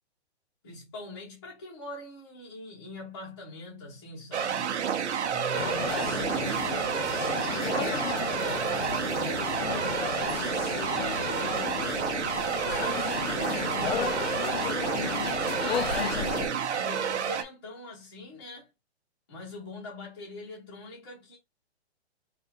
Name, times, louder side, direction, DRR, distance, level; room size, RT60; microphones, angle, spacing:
voice 1, 0.6-4.8 5.2-6.9 7.4-10.2 10.8-15.0 15.9-18.7 19.3-21.4, left 2 dB, 20° left, 0.8 m, -43 dB
sound 1, 4.3-17.4, right 8 dB, 85° right, 0.9 m, -30 dB
sound 2, 5.5-16.5, left 8 dB, 65° left, 0.6 m, -33 dB
4.2 x 2.5 x 4.3 m
hypercardioid pair, 180°, 33 cm